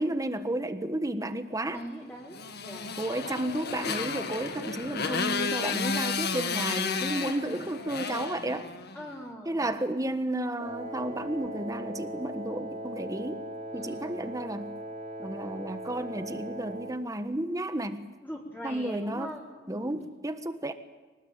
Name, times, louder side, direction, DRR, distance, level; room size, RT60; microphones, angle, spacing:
voice 1, 0.0-1.8 3.0-8.7 9.4-13.4 13.7-14.8 15.2-18.1 18.6-19.3 19.7-20.7, right 1 dB, 20° right, 9 dB, 1.4 m, -32 dB
voice 2, 1.7-2.9 4.5-4.8 7.1-7.8 8.9-9.7 13.7-14.2 18.2-20.0, equal, 10° left, -4 dB, 4.1 m, -42 dB
Motorcycle, 2.3-9.0, left 4 dB, 55° left, 1.8 m, -32 dB
Wind instrument woodwind instrument, 10.6-17.0, right 1 dB, 40° right, 3.9 m, -39 dB
24.5 x 19.5 x 8.9 m, 1.3 s
head